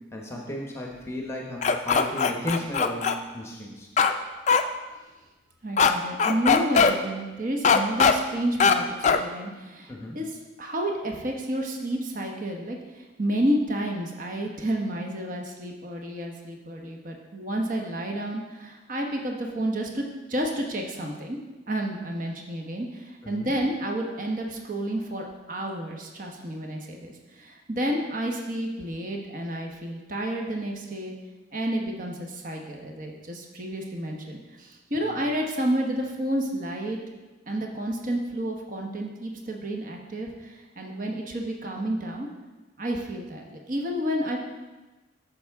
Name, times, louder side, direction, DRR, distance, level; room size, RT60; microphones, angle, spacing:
voice 1, 0.1-3.1 3.3-3.9 9.9-10.2 23.2-23.5 35.1-35.2, left 1 dB, 15° left, 0 dB, 0.9 m, -34 dB
sound 1, 1.6-3.2 4.0-4.1 4.5-4.6 5.8-5.9 6.2-6.9 7.6-8.1 8.6-8.8 9.0-9.2, left 5 dB, 35° left, 0.4 m, -19 dB
voice 2, 5.6-10.3 10.6-21.4 21.7-31.1 31.5-37.0 37.5-42.3 42.8-44.4, right 1 dB, 40° right, 1 dB, 0.9 m, -30 dB
10.0 x 7.0 x 3.5 m, 1.2 s
head